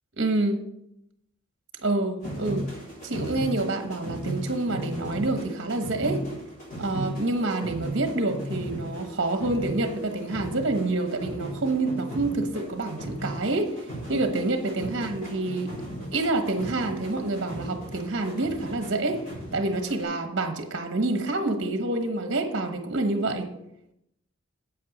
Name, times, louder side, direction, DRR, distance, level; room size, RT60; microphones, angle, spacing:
voice 1, 0.2-0.6 1.8-2.7 3.0-6.2 6.8-13.7 14.1-15.7 16.1-19.2 19.5-23.5, right 2 dB, 60° right, 6 dB, 1.1 m, -27 dB
sound 1, 2.2-20.0, right 1 dB, 35° left, 4.7 m, -36 dB
8.6 x 8.0 x 5.3 m, 0.80 s
head